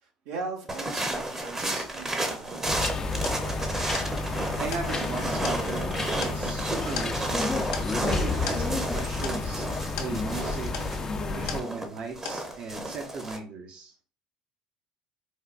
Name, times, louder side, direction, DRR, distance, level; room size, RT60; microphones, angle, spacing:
voice 1, 0.0-2.8, right 4 dB, 80° right, 2 dB, 0.8 m, -39 dB
sound 1, 0.7-13.4, right 1 dB, 20° right, 0.7 m, -32 dB
sound 2, 2.6-12.0 12.3-12.8, left 6 dB, 90° left, 0.7 m, -41 dB
sound 3, 2.7-11.6, left 3 dB, 30° left, 0.4 m, -31 dB
voice 2, 4.6-5.9 6.2-7.6 8.0-9.7 10.0-10.7 11.4-13.9, right 4 dB, 55° right, 2 dB, 0.7 m, -37 dB
4.4 x 2.2 x 2.4 m, 0.38 s
supercardioid pair, 85°, 2 cm